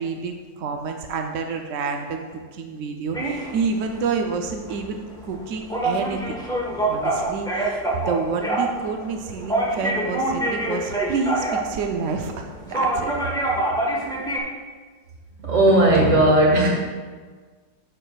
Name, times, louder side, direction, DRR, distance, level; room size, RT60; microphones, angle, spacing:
voice 1, 0.0-6.4 6.8-13.1, right 5 dB, 70° right, 4 dB, 0.7 m, -28 dB
sound 1, 3.1-14.4, right 2 dB, 5° left, 0.8 m, -26 dB
voice 2, 15.4-16.7, right 1 dB, 45° right, -2 dB, 1.9 m, -16 dB
10.5 x 6.7 x 2.3 m, 1.5 s
omnidirectional pair, 1.9 m